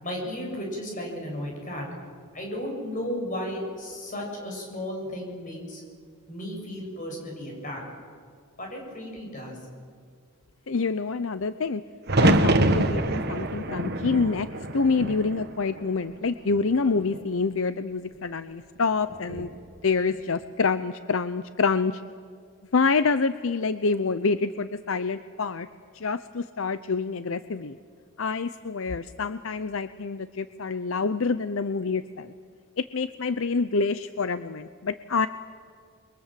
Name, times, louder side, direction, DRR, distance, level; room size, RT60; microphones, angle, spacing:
voice 1, 0.0-1.8 2.3-5.8 6.3-7.9 8.6-9.6, left 1 dB, 35° left, 0 dB, 7.4 m, -34 dB
voice 2, 10.7-11.8 12.2-14.5 14.7-19.5 19.8-22.0 22.7-25.7 25.9-27.8 28.2-32.3 32.8-35.3, left 4 dB, 65° left, 13 dB, 0.6 m, -27 dB
sound 1, 12.1-16.1 16.5-17.2 19.1-19.6, right 1 dB, 45° right, 1.4 m, -25 dB
29.0 x 23.0 x 7.6 m, 2.1 s
head